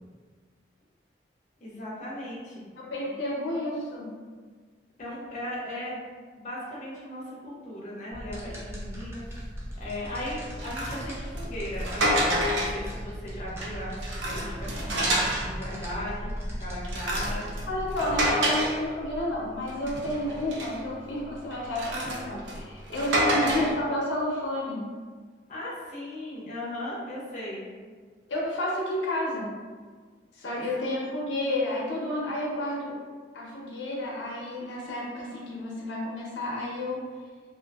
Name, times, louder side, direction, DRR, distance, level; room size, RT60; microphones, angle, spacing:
voice 1, 1.6-2.6 5.0-6.0 6.4-9.5 9.8-17.5 25.5-27.7 30.4-30.8, left 1 dB, 40° left, -6 dB, 0.6 m, -37 dB
voice 2, 2.8-4.1 17.7-24.8 28.3-29.5 30.3-33.0 33.3-37.0, left 1 dB, 90° left, -4 dB, 0.6 m, -31 dB
sound 1, 8.1-18.3, equal, 15° right, 0.4 m, -39 dB
sound 2, 8.9-9.0 9.5-9.7 10.3-12.9 13.4-15.5 16.0-19.3 19.7-20.9 21.5-23.8, equal, 90° right, 0.5 m, -29 dB
2.5 x 2.5 x 2.3 m, 1.5 s
head